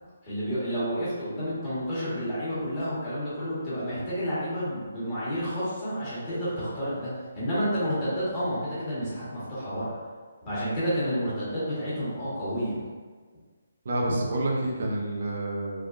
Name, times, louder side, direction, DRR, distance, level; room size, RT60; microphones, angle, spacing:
voice 1, 0.2-9.9 10.4-12.8, equal, 30° left, -11 dB, 1.3 m, -30 dB
voice 2, 13.8-15.9, right 1 dB, 60° right, -2 dB, 0.7 m, -28 dB
3.4 x 2.3 x 2.5 m, 1.5 s
hypercardioid pair, 155°, 0 cm